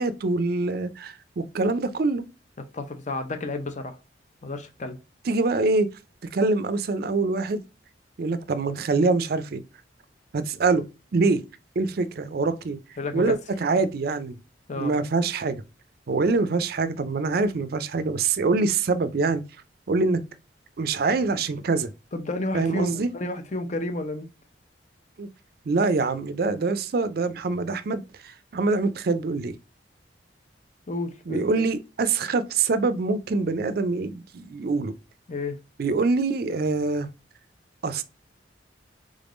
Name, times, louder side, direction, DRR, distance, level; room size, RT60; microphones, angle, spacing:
voice 1, 0.0-2.2 5.3-5.9 6.3-7.6 8.2-9.6 10.3-10.8 11.1-11.4 11.8-12.8 13.1-14.4 14.8-15.6 16.1-19.4 19.9-20.2 20.8-21.9 22.5-23.1 25.2-25.3 25.7-29.5 31.3-34.9 35.8-37.1 37.8-38.0, right 3 dB, 55° right, 0.4 m, -24 dB
voice 2, 2.7-4.0 4.4-5.0 13.0-13.3 14.7-14.9 22.1-24.3 30.9-31.7 35.3-35.6, left 2 dB, 40° left, 0.6 m, -31 dB
3.7 x 3.5 x 2.5 m
head